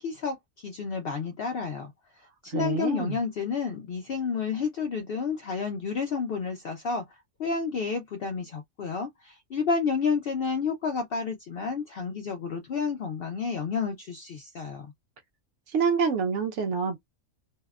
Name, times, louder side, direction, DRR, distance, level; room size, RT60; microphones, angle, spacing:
voice 1, 0.0-1.9 2.4-7.0 7.4-14.9, left 5 dB, 65° left, 0.6 m, -30 dB
voice 2, 2.5-3.2 15.7-17.0, right 5 dB, 65° right, 0.9 m, -26 dB
2.7 x 2.0 x 2.2 m
omnidirectional pair, 1.4 m